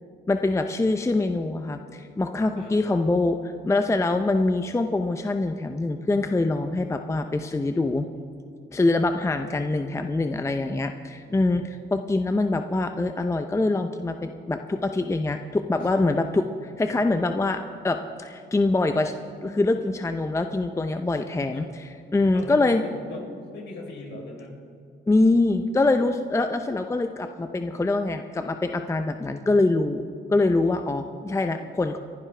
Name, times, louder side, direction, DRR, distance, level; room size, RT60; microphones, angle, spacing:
voice 1, 0.3-8.1 8.7-19.1 19.4-21.6 22.1-22.8 25.1-30.0 30.3-32.0, left 2 dB, 15° left, 7 dB, 0.6 m, -24 dB
voice 2, 2.6-2.9 8.8-9.0 15.8-16.1 21.5-21.7 22.3-24.5, left 3 dB, 65° left, -1 dB, 3.9 m, -40 dB
29.0 x 11.0 x 3.4 m, 2.4 s
cardioid pair, 90°, 20 cm